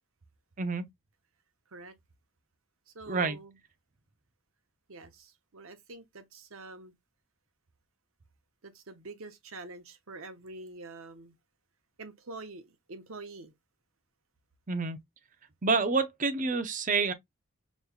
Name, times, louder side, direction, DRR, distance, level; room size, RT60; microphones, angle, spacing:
voice 1, 2.9-3.6 4.9-6.9 8.6-11.4 12.0-13.5, right 3 dB, 70° right, 0.9 m, -46 dB
voice 2, 14.7-15.0 15.6-17.1, right 4 dB, 35° right, 0.6 m, -28 dB
5.1 x 3.1 x 2.4 m
head